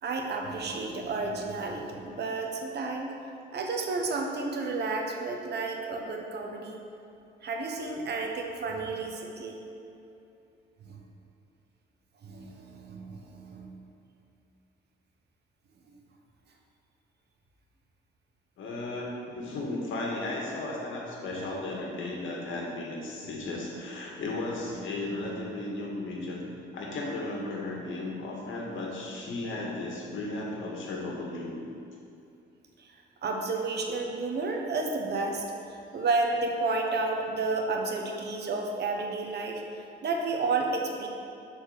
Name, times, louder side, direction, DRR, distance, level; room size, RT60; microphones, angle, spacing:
voice 1, 0.0-3.1 3.5-6.8 7.4-9.7 10.8-11.0 12.2-13.7 24.9-25.4 32.8-32.9 33.2-41.1, right 3 dB, 55° right, 2 dB, 1.1 m, -31 dB
voice 2, 18.6-19.1 19.3-26.4 26.7-31.6, left 2 dB, 75° left, -2 dB, 1.8 m, -35 dB
7.5 x 4.6 x 6.5 m, 2.6 s
cardioid pair, 90°, 20 cm